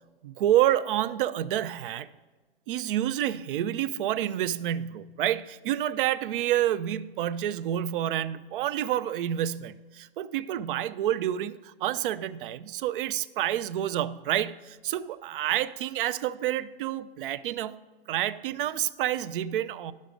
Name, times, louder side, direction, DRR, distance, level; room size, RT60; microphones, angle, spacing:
voice 1, 0.2-2.1 2.7-17.8 18.1-19.9, right 12 dB, 60° right, 15 dB, 0.6 m, -28 dB
11.0 x 6.5 x 5.1 m, 1.3 s
hypercardioid pair, 115°, 30 cm